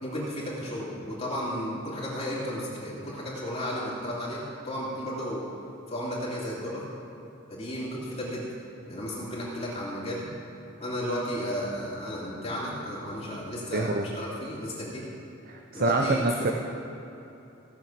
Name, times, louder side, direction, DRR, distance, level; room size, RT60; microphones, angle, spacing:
voice 1, 0.0-5.5 5.9-6.8 7.5-8.5 8.9-10.3 10.8-15.1 15.7-16.5, equal, 30° left, -6 dB, 2.6 m, -33 dB
voice 2, 13.7-14.1 15.5-16.5, right 2 dB, 45° right, 2 dB, 0.7 m, -26 dB
17.0 x 7.2 x 6.0 m, 3.0 s
head